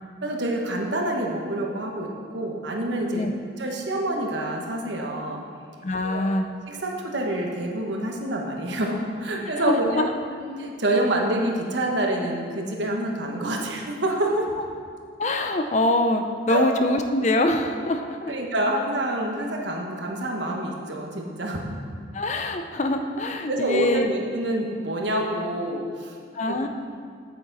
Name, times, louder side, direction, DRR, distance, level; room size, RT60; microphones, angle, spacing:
voice 1, 0.2-3.3 3.6-5.4 6.0-6.2 6.7-10.0 10.4-14.5 16.5-16.6 18.3-21.6 23.5-26.7, right 1 dB, 65° right, 0 dB, 1.1 m, -27 dB
voice 2, 5.8-6.5 9.5-10.1 15.2-18.3 22.1-24.1 26.3-26.7, left 2 dB, 35° left, 6 dB, 0.4 m, -24 dB
8.7 x 8.0 x 4.0 m, 2.2 s
head